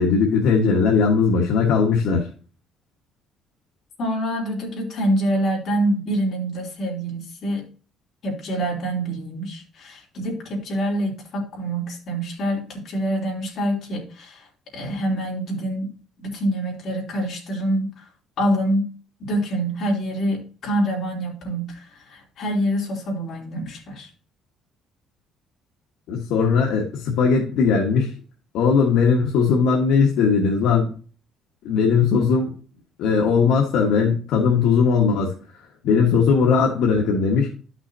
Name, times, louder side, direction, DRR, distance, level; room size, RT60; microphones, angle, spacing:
voice 1, 0.0-2.3 26.1-28.1 28.5-30.9 31.6-32.5 33.0-37.5, left 5 dB, 75° left, -1 dB, 1.5 m, -19 dB
voice 2, 4.0-7.6 8.2-14.5 14.7-15.9 16.2-18.0 18.4-18.9 19.2-24.1, right 1 dB, 50° left, -1 dB, 3.2 m, -26 dB
11.5 x 6.1 x 2.7 m, 0.39 s
cardioid pair, 145°, 0 cm